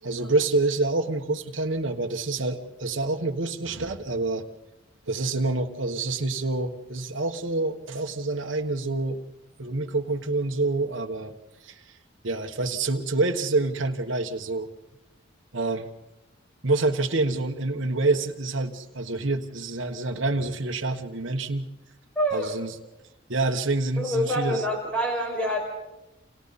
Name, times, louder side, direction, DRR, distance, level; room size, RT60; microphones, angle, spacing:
voice 1, 0.0-4.4 5.1-9.2 9.6-11.3 11.6-11.8 12.2-14.7 15.5-15.9 16.6-21.7 22.3-22.7 23.3-24.6, right 3 dB, 70° right, 3 dB, 1.4 m, -27 dB
voice 2, 22.2-22.5 24.0-25.6, equal, 5° left, -1 dB, 5.9 m, -26 dB
29.0 x 28.0 x 4.2 m, 0.97 s
head